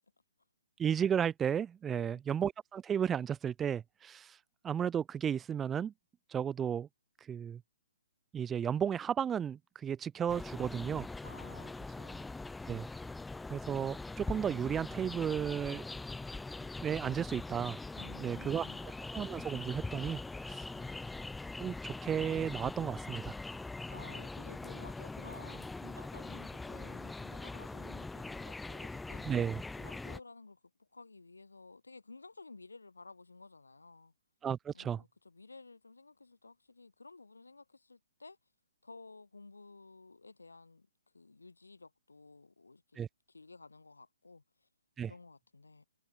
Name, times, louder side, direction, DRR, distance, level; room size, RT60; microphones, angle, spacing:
voice 1, 0.8-4.4 4.6-5.9 6.3-6.9 7.3-7.6 8.3-11.1 12.7-12.9 13.5-15.8 16.8-17.8 18.2-18.7 19.1-20.7 21.6-23.4 29.2-29.6 34.4-35.0 43.0-43.1 45.0-45.1, right 8 dB, 15° right, 0.6 m, -34 dB
voice 2, 1.9-2.2 11.2-12.3 17.9-18.8 23.9-29.3 29.8-34.1 34.7-38.4 38.8-40.9 41.1-43.0 43.3-44.7 45.0-45.8, left 3 dB, 90° left, 7.2 m, -54 dB
sound 1, 10.3-30.2, left 3 dB, 5° left, 3.1 m, -42 dB
hypercardioid pair, 135°, 0 cm